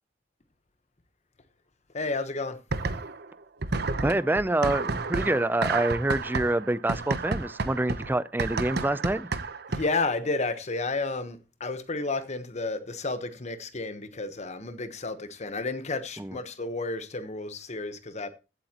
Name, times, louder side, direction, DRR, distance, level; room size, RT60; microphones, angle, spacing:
voice 1, 1.9-2.6 9.7-18.3, left 3 dB, 40° left, 1.1 m, -31 dB
sound 1, 2.7-3.3 3.6-10.1, right 3 dB, 60° right, 0.9 m, -31 dB
voice 2, 4.0-9.3 16.2-16.3, right 1 dB, 10° right, 0.4 m, -26 dB
16.0 x 8.1 x 2.9 m
head